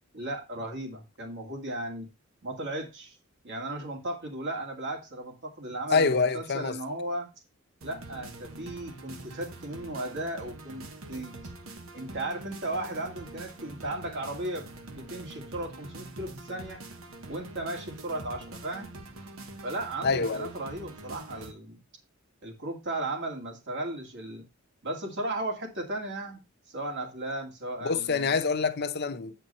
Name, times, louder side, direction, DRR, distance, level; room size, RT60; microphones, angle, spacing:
voice 1, 0.1-2.1 2.4-3.2 3.4-7.3 7.8-11.3 11.9-16.8 17.3-18.9 19.6-21.8 22.4-24.4 24.8-26.4 26.7-28.3, right 1 dB, 60° right, 2.3 m, -36 dB
voice 2, 5.9-6.8 20.0-20.5 27.8-29.3, left 4 dB, 55° left, 0.8 m, -26 dB
sound 1, 7.8-21.5, right 2 dB, 90° right, 1.3 m, -45 dB
8.9 x 4.5 x 5.3 m
head